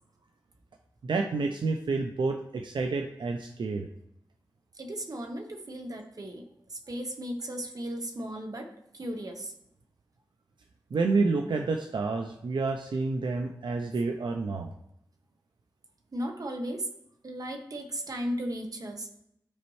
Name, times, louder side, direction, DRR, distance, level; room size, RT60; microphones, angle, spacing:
voice 1, 1.0-3.9 10.9-14.7, right 3 dB, 80° right, 4 dB, 0.5 m, -29 dB
voice 2, 4.7-9.5 16.1-16.9 17.2-19.1, equal, 50° right, 4 dB, 1.0 m, -36 dB
12.0 x 4.2 x 3.1 m, 0.75 s
wide cardioid pair, 95°, 8 cm